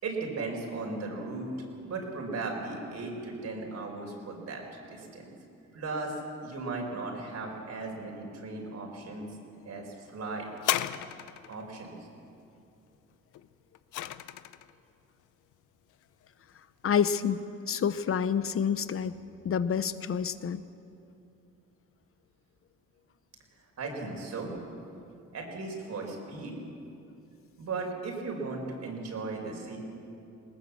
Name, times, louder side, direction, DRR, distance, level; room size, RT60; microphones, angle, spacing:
voice 1, 0.0-1.5 1.8-5.3 5.7-6.2 6.4-9.4 9.7-10.5 11.5-12.1 23.8-24.5 25.3-26.6 27.6-29.8, right 3 dB, 60° right, 1 dB, 5.2 m, -37 dB
sound 1, 10.6-11.6 13.3-14.7 15.5-15.6, left 13 dB, 90° left, 0.7 m, -33 dB
voice 2, 16.8-19.2 19.4-20.6, left 7 dB, 45° left, 13 dB, 0.9 m, -28 dB
20.5 x 19.0 x 7.3 m, 2.7 s
cardioid pair, 90°, 30 cm